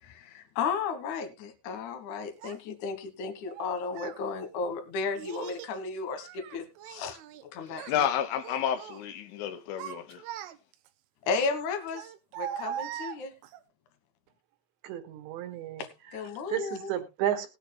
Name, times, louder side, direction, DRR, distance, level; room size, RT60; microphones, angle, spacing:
voice 1, 0.0-8.1 11.2-13.3 15.8-16.9, left 5 dB, 70° left, 1.9 m, -34 dB
Child speech kid speaking, 2.4-2.6 3.5-4.2 5.2-5.8 6.2-7.4 7.7-8.0 8.4-9.0 9.5-10.9 11.9-13.6, right 10 dB, 90° right, 3.5 m, -40 dB
voice 2, 7.7-10.3, left 9 dB, 85° left, 3.5 m, -31 dB
voice 3, 14.8-15.9 16.5-17.5, right 11 dB, 75° right, 3.6 m, -32 dB
20.0 x 9.0 x 2.2 m
omnidirectional pair, 5.5 m